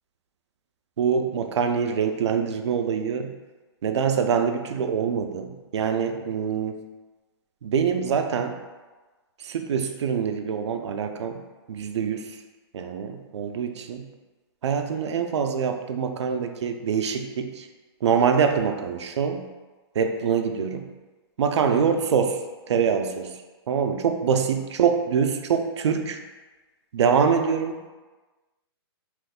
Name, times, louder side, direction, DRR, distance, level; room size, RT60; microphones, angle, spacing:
voice 1, 1.0-3.3 3.8-6.8 7.6-8.6 9.4-11.4 11.7-12.4 12.7-14.1 14.6-17.7 18.0-19.5 20.0-20.9 21.4-22.4 22.7-23.3 23.7-26.2 26.9-27.8, right 6 dB, 90° right, 6 dB, 0.4 m, -24 dB
3.0 x 2.4 x 3.4 m, 1.2 s
hypercardioid pair, 180°, 14 cm